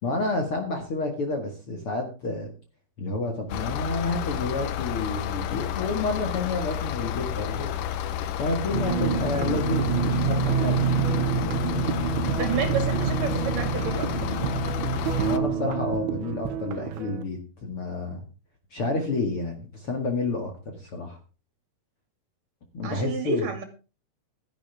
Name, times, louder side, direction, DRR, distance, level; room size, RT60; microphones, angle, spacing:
voice 1, 0.0-2.5 3.0-7.7 8.4-10.9 15.2-18.2 18.7-21.2 22.7-23.5, left 3 dB, 45° left, 3 dB, 2.2 m, -29 dB
sound 1, 3.5-15.4, left 10 dB, 70° left, 2.2 m, -31 dB
sound 2, 8.7-16.2, right 5 dB, 40° right, 2.4 m, -27 dB
sound 3, 8.9-17.2, right 10 dB, 80° right, 3.0 m, -33 dB
voice 2, 11.9-14.1 22.8-23.6, right 5 dB, 60° right, 6 dB, 3.8 m, -30 dB
15.5 x 12.5 x 3.6 m, 0.33 s
omnidirectional pair, 4.6 m